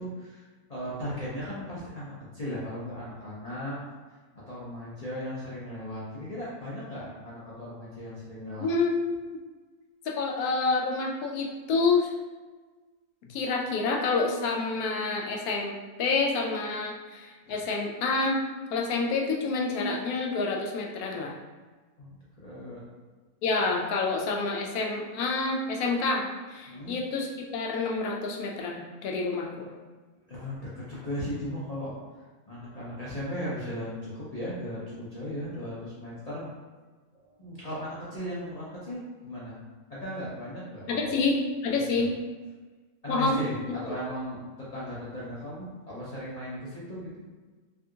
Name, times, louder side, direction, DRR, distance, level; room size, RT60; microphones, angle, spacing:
voice 1, 0.0-3.8 4.4-8.7 17.4-17.6 22.0-22.2 22.4-22.8 26.7-26.9 30.3-32.0 32.5-36.5 37.2-39.6 39.9-41.1 41.9-42.1 43.0-47.1, equal, 40° left, -9 dB, 0.5 m, -37 dB
voice 2, 8.6-9.4 10.1-12.1 13.3-15.7 16.0-18.4 18.7-21.3 23.4-29.7 40.9-42.1 43.1-43.4 43.9-44.0, left 3 dB, 75° left, 0 dB, 1.0 m, -28 dB
3.4 x 2.7 x 2.3 m, 1.3 s
omnidirectional pair, 1.6 m